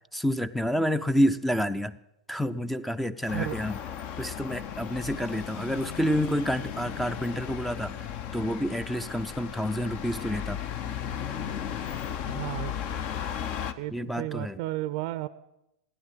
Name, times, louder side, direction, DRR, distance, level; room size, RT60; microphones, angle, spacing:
voice 1, 0.1-2.0 2.3-3.8 4.2-8.1 8.3-10.6 13.9-14.6, equal, 5° left, 15 dB, 0.5 m, -28 dB
sound 1, 3.3-13.7, left 8 dB, 45° left, 0.9 m, -35 dB
voice 2, 12.3-12.7 13.8-15.3, right 16 dB, 55° right, 17 dB, 0.5 m, -33 dB
15.0 x 10.5 x 7.5 m, 0.88 s
hypercardioid pair, 100°, 3 cm